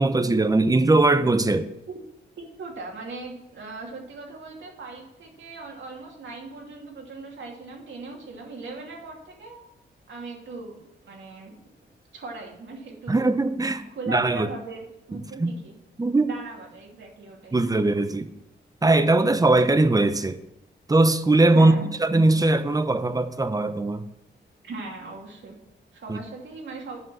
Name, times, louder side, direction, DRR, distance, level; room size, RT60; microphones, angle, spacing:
voice 1, 0.0-1.7 13.1-14.5 15.1-15.5 16.0-16.3 17.5-18.3 18.8-20.4 20.9-21.7 22.0-24.1 26.1-26.2, right 2 dB, 20° right, 0.8 m, -20 dB
voice 2, 2.4-9.6 10.1-11.6 12.1-13.3 13.9-15.7 16.2-17.6 21.5-21.9 24.6-25.6 25.9-27.0, right 3 dB, 75° right, 2.6 m, -39 dB
8.2 x 5.3 x 7.5 m
cardioid pair, 75°, 19 cm